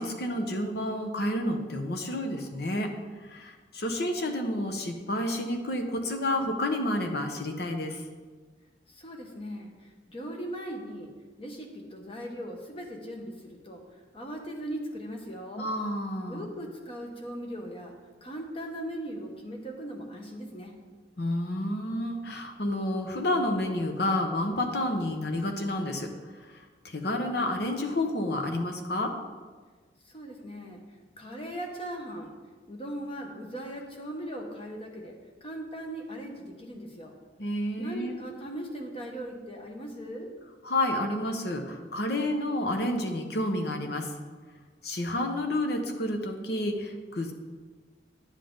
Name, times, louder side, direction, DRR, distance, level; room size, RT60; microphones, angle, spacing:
voice 1, 0.0-2.9 3.2-8.0 15.6-16.4 21.2-26.1 26.5-29.1 37.4-38.1 40.6-44.1 44.8-47.3, left 1 dB, 60° left, 4 dB, 0.9 m, -30 dB
voice 2, 8.9-13.8 14.1-15.7 16.3-17.9 18.2-20.8 30.0-30.8 31.2-32.3 32.7-37.2 37.8-40.3, right 1 dB, 30° left, 2 dB, 1.1 m, -39 dB
10.0 x 7.5 x 3.9 m, 1.4 s
head